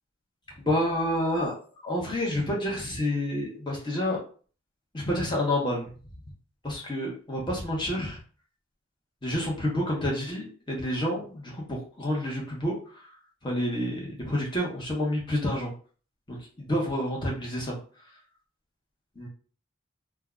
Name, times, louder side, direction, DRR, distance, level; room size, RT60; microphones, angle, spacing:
voice 1, 0.6-1.6 1.8-4.2 4.9-5.9 6.6-8.2 9.2-11.6 12.0-12.8 13.4-15.7 16.3-17.7 19.2-19.3, left 1 dB, 20° left, -3 dB, 1.0 m, -29 dB
2.7 x 2.2 x 3.6 m, 0.41 s
head